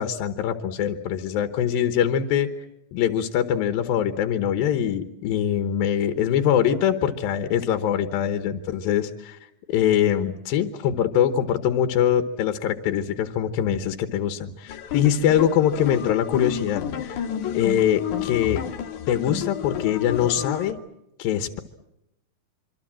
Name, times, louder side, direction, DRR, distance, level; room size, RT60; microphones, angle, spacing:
voice 1, 0.0-2.5 2.9-9.4 9.7-17.2 17.5-18.6 19.1-20.8 21.2-21.6, left 9 dB, 80° left, 8 dB, 2.9 m, -23 dB
sound 1, 14.7-20.7, left 10 dB, 65° left, 2.6 m, -31 dB
25.5 x 25.0 x 7.5 m, 0.86 s
omnidirectional pair, 4.1 m